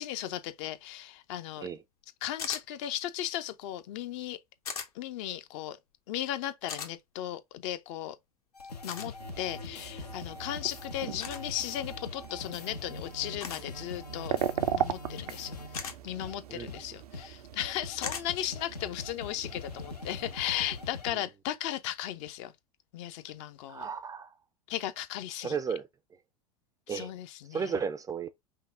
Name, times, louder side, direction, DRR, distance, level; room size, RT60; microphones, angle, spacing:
voice 1, 0.0-1.7 2.2-4.4 4.9-5.8 6.1-8.2 8.8-14.4 14.7-15.6 16.0-22.5 22.9-23.9 24.7-25.6 26.9-27.8, left 12 dB, 50° left, 0.6 m, -36 dB
sound 1, 2.4-2.7 4.7-4.9 6.7-6.9 8.9-9.1 11.2-11.4 13.4-13.7 15.7-16.0 18.0-18.3, left 6 dB, 70° left, 1.1 m, -37 dB
sound 2, 8.5-15.9 16.2-16.3 16.7-16.8 17.1-17.3 17.6-21.1, left 3 dB, 85° left, 0.8 m, -43 dB
sound 3, 9.2-20.8, right 10 dB, 75° right, 0.5 m, -39 dB
voice 2, 23.7-24.3 25.4-25.9 26.9-27.1 27.5-28.3, right 6 dB, 15° right, 0.4 m, -34 dB
5.6 x 2.1 x 3.7 m
figure-of-eight pair, 85°, 20 cm